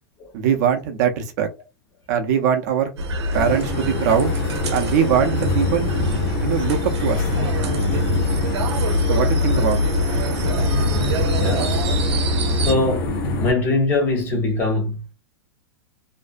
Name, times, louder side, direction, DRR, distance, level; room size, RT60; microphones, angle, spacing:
voice 1, 0.3-1.5 2.1-2.9 3.3-4.3 4.7-5.9 6.4-7.2 9.1-9.8, right 8 dB, 40° right, 0.4 m, -21 dB
sound 1, 3.0-12.7, left 1 dB, 90° right, 0.6 m, -23 dB
sound 2, 3.3-13.5, left 2 dB, 65° left, 0.8 m, -26 dB
voice 2, 11.4-11.8 12.2-13.1 13.4-15.1, left 2 dB, 15° left, 0.4 m, -23 dB
2.5 x 2.1 x 2.4 m
supercardioid pair, 170°, 14 cm